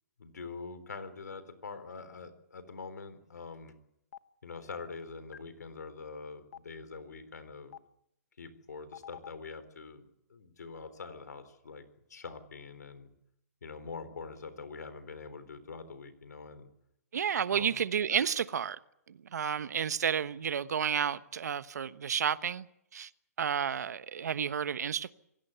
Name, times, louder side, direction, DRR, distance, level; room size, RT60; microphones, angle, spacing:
voice 1, 0.2-3.8 4.4-7.8 8.4-11.8 12.1-13.1 13.6-16.7 17.5-17.8, left 4 dB, 85° left, 3.9 m, -44 dB
Stream, 4.1-4.2 5.3-5.4 6.5-6.6 7.7-7.8 8.9-9.3, left 9 dB, 70° left, 1.2 m, -45 dB
voice 2, 17.1-18.8 19.3-22.7 22.9-23.1 23.4-25.1, right 7 dB, 75° right, 1.1 m, -31 dB
26.0 x 17.0 x 8.2 m
hypercardioid pair, 145°, 9 cm